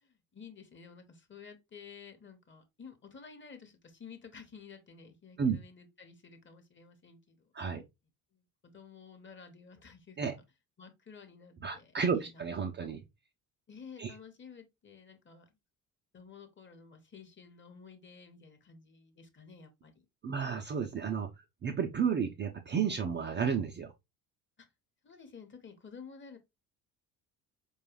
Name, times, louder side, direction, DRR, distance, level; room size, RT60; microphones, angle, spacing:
voice 1, 0.0-7.5 8.3-10.4 10.8-12.9 13.7-15.4 16.1-19.9 25.0-26.4, left 6 dB, 25° left, 0.9 m, -52 dB
voice 2, 11.6-13.0 14.0-14.1 20.2-21.3 21.6-23.9, right 6 dB, 25° right, 0.5 m, -32 dB
4.6 x 2.3 x 3.0 m
figure-of-eight pair, 55°, 47 cm